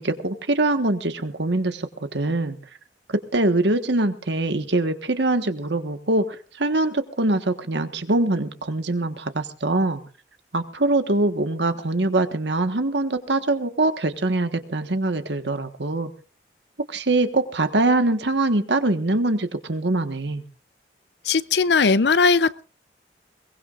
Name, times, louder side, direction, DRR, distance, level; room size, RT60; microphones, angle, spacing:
voice 1, 0.0-2.6 3.1-10.0 10.5-16.1 16.9-20.4, right 2 dB, 80° right, 1.5 m, -23 dB
voice 2, 21.3-22.6, left 4 dB, 70° left, 0.6 m, -18 dB
22.0 x 19.0 x 2.5 m
head